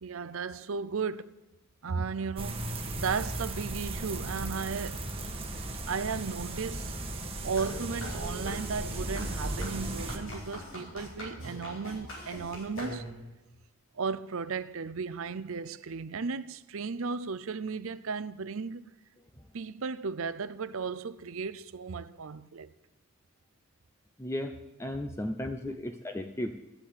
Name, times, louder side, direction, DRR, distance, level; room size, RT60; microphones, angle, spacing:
voice 1, 0.0-1.4 1.8-5.1 5.9-7.0 7.4-13.1 13.9-18.9 19.5-22.7 25.7-25.8, right 5 dB, 65° right, 0.6 m, -35 dB
sound 1, 2.4-10.2, right 2 dB, 25° right, 1.5 m, -36 dB
sound 2, 7.5-13.4, left 1 dB, 60° left, 5.3 m, -43 dB
voice 2, 24.2-24.5 24.8-26.5, left 1 dB, 10° left, 0.6 m, -34 dB
13.5 x 8.1 x 8.5 m
head